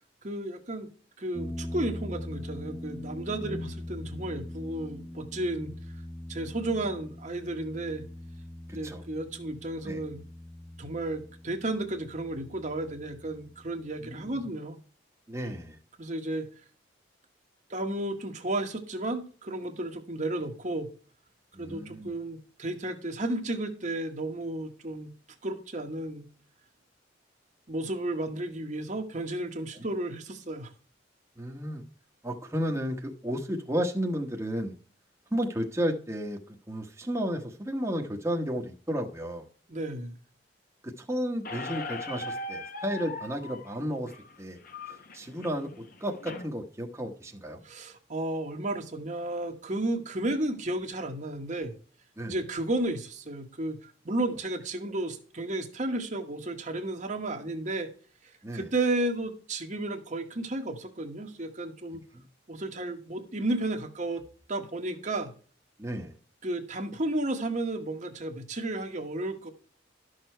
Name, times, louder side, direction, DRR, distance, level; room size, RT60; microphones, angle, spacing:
voice 1, 0.2-0.9 1.2-5.7 6.3-8.1 8.7-10.2 10.8-14.8 16.0-16.5 17.7-20.9 21.6-25.1 25.4-26.3 27.7-30.7 39.7-40.1 47.6-51.7 52.2-57.9 58.2-62.0 62.5-64.2 64.5-65.3 66.4-69.5, right 2 dB, 40° right, 4 dB, 1.2 m, -33 dB
sound 1, 1.3-14.4, left 1 dB, 20° left, 1.0 m, -42 dB
voice 2, 8.7-9.0 9.8-10.0 14.0-14.4 15.3-15.8 21.5-22.1 31.4-31.8 32.2-34.8 35.3-36.4 36.7-39.4 40.8-44.1 44.4-44.6 44.9-45.7 46.0-47.6 52.2-52.3 58.4-58.7 62.1-62.2 65.8-66.2, equal, 15° right, 1 dB, 1.1 m, -33 dB
Squeak, 41.4-46.5, left 2 dB, 50° left, 1.2 m, -40 dB
12.0 x 6.5 x 4.5 m, 0.40 s
head